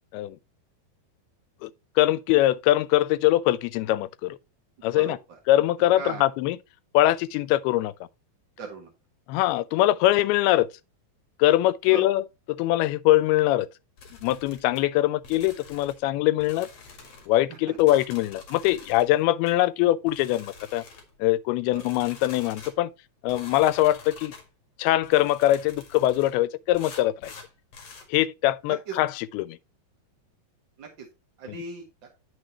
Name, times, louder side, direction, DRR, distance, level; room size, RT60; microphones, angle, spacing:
voice 1, 2.0-4.4 4.8-5.2 5.5-6.6 6.9-7.9 9.3-10.7 11.4-13.7 14.2-16.7 17.3-20.8 21.2-22.9 23.2-24.3 24.8-27.3 28.1-29.6, left 15 dB, 85° left, 2.5 m, -22 dB
voice 2, 4.9-5.4 5.9-6.2 8.6-8.9 11.9-12.1 17.7-17.8 21.7-21.8 28.7-29.0 30.8-31.1 31.4-32.1, right 4 dB, 55° right, 1.3 m, -38 dB
sound 1, 14.0-14.8 15.2-16.0 16.4-17.3 17.8-19.1 19.5-19.6 20.1-21.1 21.7-22.8 23.3-24.5 25.0-26.3 26.7-28.1, left 4 dB, 45° left, 2.5 m, -46 dB
9.6 x 6.5 x 2.9 m
omnidirectional pair, 4.4 m